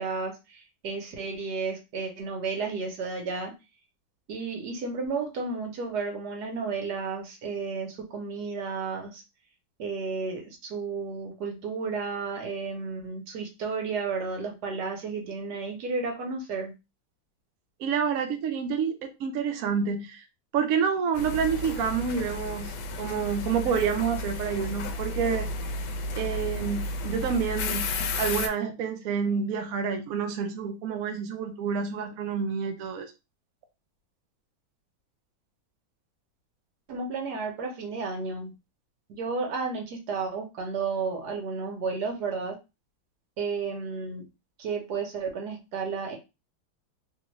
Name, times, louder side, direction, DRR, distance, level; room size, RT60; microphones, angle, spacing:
voice 1, 0.0-3.5 4.3-9.2 9.8-16.7 36.9-38.5 39.1-42.6 43.4-44.2 44.6-46.2, right 4 dB, 60° right, 2 dB, 1.3 m, -32 dB
voice 2, 17.8-20.2 20.5-25.5 26.1-27.9 28.2-33.1, right 6 dB, 80° right, 5 dB, 0.7 m, -28 dB
sound 1, 21.1-28.5, left 2 dB, 85° left, 1.4 m, -32 dB
3.4 x 2.4 x 3.0 m, 0.26 s
omnidirectional pair, 2.1 m